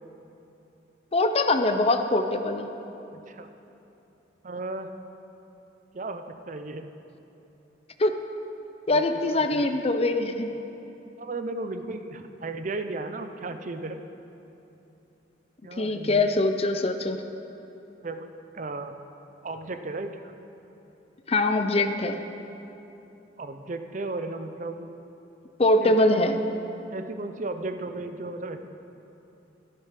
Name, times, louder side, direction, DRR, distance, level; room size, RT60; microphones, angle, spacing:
voice 1, 1.1-2.7 8.0-8.1 8.9-10.5 15.8-17.2 21.3-22.2 25.6-26.4, left 2 dB, 35° left, 7 dB, 0.5 m, -23 dB
voice 2, 3.1-3.5 4.4-4.9 5.9-6.9 8.9-9.0 9.3-9.6 11.2-14.0 15.6-16.3 18.0-18.3 18.5-19.0 19.4-20.3 23.4-24.9 25.8-26.3 26.9-28.7, right 2 dB, 45° right, 8 dB, 0.6 m, -35 dB
11.5 x 10.5 x 5.8 m, 2.9 s
head